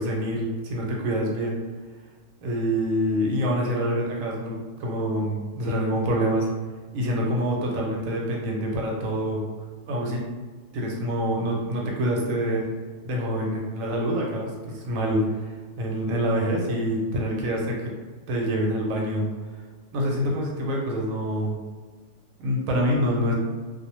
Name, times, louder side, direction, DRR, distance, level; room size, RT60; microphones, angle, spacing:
voice 1, 0.0-1.6 2.4-6.5 6.9-9.4 9.8-10.2 10.7-12.6 13.0-15.5 15.8-17.9 18.3-19.3 19.9-21.6 22.4-23.3, equal, 75° right, -2 dB, 1.0 m, -26 dB
2.4 x 2.0 x 2.8 m, 1.4 s
omnidirectional pair, 1.5 m